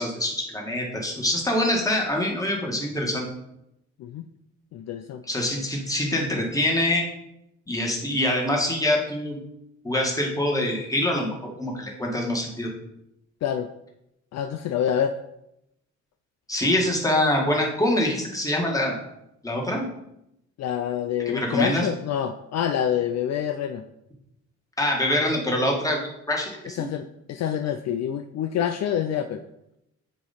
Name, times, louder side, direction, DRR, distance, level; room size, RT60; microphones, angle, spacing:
voice 1, 0.0-3.3 5.3-7.0 7.7-9.4 9.8-12.7 16.5-19.0 19.4-19.9 21.3-21.9 24.8-26.9, left 1 dB, 10° left, -1 dB, 1.7 m, -25 dB
voice 2, 4.7-5.2 13.4-13.7 14.3-15.1 20.6-23.8 26.7-29.4, left 9 dB, 60° left, 8 dB, 0.5 m, -27 dB
8.7 x 3.0 x 4.2 m, 0.82 s
cardioid pair, 90°, 30 cm